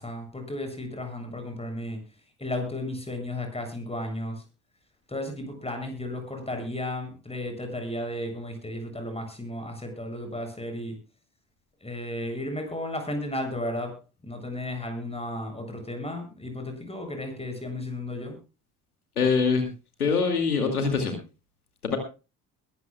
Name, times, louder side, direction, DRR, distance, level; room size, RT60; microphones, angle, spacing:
voice 1, 0.0-2.0 2.4-4.4 5.1-11.0 11.8-18.4, left 1 dB, 15° left, 5 dB, 7.4 m, -34 dB
voice 2, 19.2-19.7 20.0-21.1 21.8-22.0, left 5 dB, 85° left, 5 dB, 2.4 m, -23 dB
22.0 x 13.5 x 2.3 m, 0.31 s
figure-of-eight pair, 50°, 43 cm